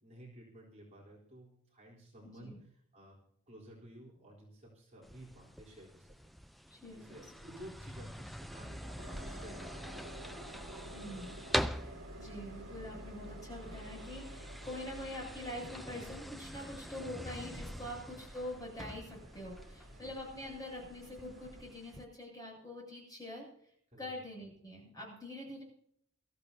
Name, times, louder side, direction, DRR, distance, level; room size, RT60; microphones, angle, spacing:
voice 1, 0.0-2.5 2.9-3.2 3.5-6.1 6.8-10.1 17.7-17.9 19.9-20.1 23.9-24.2, right 1 dB, 35° right, -3 dB, 4.0 m, -54 dB
sound 1, 5.0-22.0, equal, ahead, 0.5 m, -44 dB
voice 2, 6.7-7.3 10.8-23.5 24.0-25.6, left 1 dB, 20° left, -1 dB, 7.8 m, -45 dB
Train, 9.0-21.6, right 1 dB, 65° right, 3.2 m, -50 dB
22.5 x 14.5 x 2.9 m, 0.65 s
head